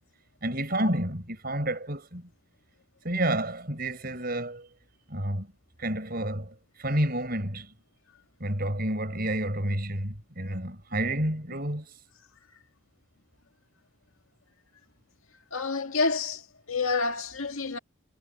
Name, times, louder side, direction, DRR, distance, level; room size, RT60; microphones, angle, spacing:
voice 1, 0.4-2.3 3.0-4.7 5.1-5.5 5.8-7.7 8.4-11.9, right 1 dB, 45° right, 5.8 m, -30 dB
voice 2, 15.5-17.8, left 4 dB, 85° left, 2.0 m, -28 dB
head